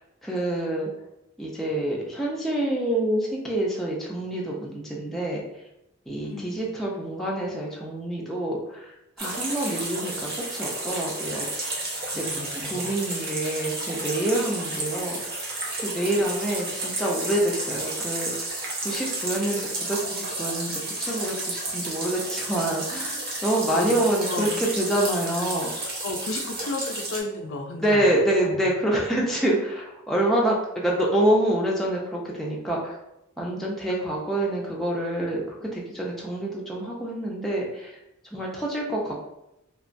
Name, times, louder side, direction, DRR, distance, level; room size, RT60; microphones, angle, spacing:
voice 1, 0.2-0.9 1.4-5.4 6.1-8.9 9.2-11.7 12.1-12.2 12.5-15.1 15.8-18.5 18.8-25.7 27.8-33.0 33.4-37.9 38.3-39.2, right 1 dB, ahead, -4 dB, 0.4 m, -27 dB
voice 2, 6.2-6.6 12.1-13.0 23.7-24.0 24.3-24.5 26.0-28.1 28.4-28.7, left 3 dB, 65° left, 3 dB, 0.4 m, -33 dB
sound 1, 9.2-27.2, right 2 dB, 50° right, 0.7 m, -32 dB
2.8 x 2.2 x 2.5 m, 0.86 s
head